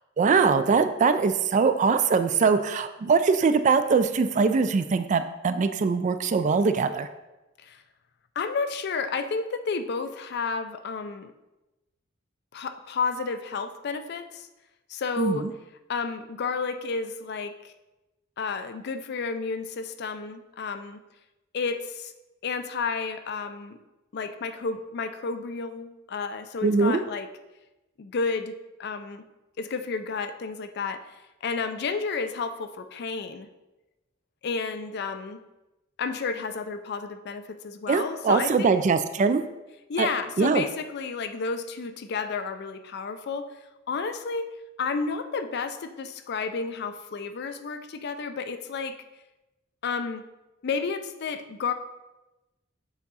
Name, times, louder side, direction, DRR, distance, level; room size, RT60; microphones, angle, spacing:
voice 1, 0.2-7.1 15.2-15.5 26.6-27.0 37.9-39.4 40.0-40.1 40.4-40.6, right 5 dB, 40° right, 10 dB, 0.3 m, -22 dB
voice 2, 8.4-11.3 12.5-14.5 14.9-15.5 15.9-17.7 18.4-21.0 21.5-22.1 22.4-23.8 24.1-27.3 28.0-28.5 28.8-29.2 29.6-33.5 34.4-35.4 36.0-38.8 39.9-43.6 43.9-49.0 49.8-50.2 50.6-51.7, left 4 dB, 55° left, 9 dB, 0.4 m, -31 dB
7.0 x 3.6 x 4.1 m, 1.0 s
head